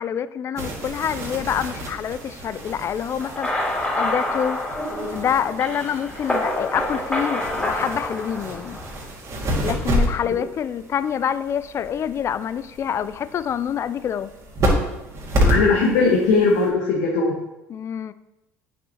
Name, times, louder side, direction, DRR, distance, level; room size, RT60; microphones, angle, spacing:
voice 1, 0.0-4.6 5.1-8.8 9.6-14.3 17.7-18.1, left 8 dB, 40° left, 15 dB, 0.4 m, -26 dB
sound 1, 0.6-16.7, equal, 45° right, 1.9 m, -29 dB
sound 2, 3.2-9.0, left 1 dB, 15° left, 2.8 m, -27 dB
voice 2, 15.3-17.4, left 4 dB, 75° left, -2 dB, 1.1 m, -19 dB
8.4 x 6.7 x 2.9 m, 0.94 s
hypercardioid pair, 70°, 7 cm